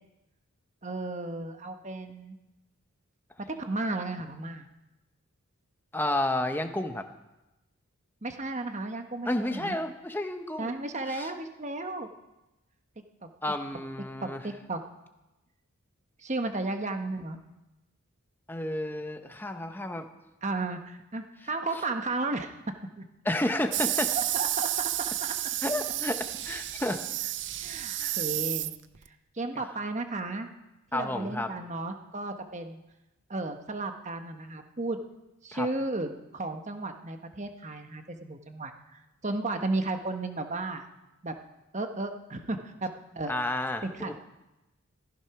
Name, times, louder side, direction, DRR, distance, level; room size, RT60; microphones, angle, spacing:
voice 1, 0.8-2.4 3.5-4.6 8.2-9.8 10.6-12.1 14.2-14.8 16.2-17.4 20.4-22.5 23.0-23.1 24.1-24.9 27.6-28.7 29.3-30.5 30.9-32.8 33.3-35.0 35.4-40.8 41.2-41.3 41.7-42.9 43.1-43.3 43.8-44.1, right 2 dB, 30° right, 6 dB, 1.1 m, -34 dB
voice 2, 5.9-7.0 9.3-10.7 11.1-11.3 13.4-14.4 18.5-20.1 23.2-24.1 25.6-27.3 28.0-28.2 30.9-31.5 35.5-35.7 43.3-44.1, left 1 dB, 10° left, 6 dB, 0.9 m, -31 dB
sound 1, 23.7-29.1, right 14 dB, 50° right, 0.5 m, -31 dB
14.5 x 14.5 x 5.9 m, 1.0 s
head